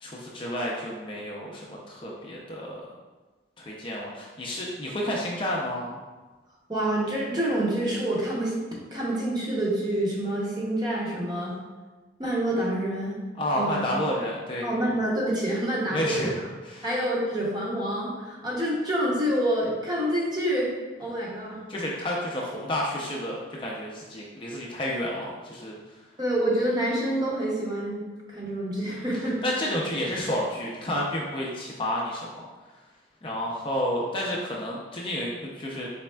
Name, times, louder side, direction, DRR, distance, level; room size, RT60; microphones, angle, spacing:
voice 1, 0.0-2.8 3.6-6.0 13.4-14.7 15.9-16.3 16.7-16.9 21.7-25.8 29.4-32.4 33.2-35.9, left 1 dB, 25° left, -3 dB, 0.4 m, -30 dB
voice 2, 6.7-8.5 8.9-11.5 12.2-13.2 13.5-13.8 14.6-16.3 16.8-20.7 21.0-21.6 26.2-28.0 28.3-29.4, right 1 dB, 20° right, -4 dB, 0.7 m, -27 dB
4.1 x 3.4 x 2.2 m, 1.3 s
head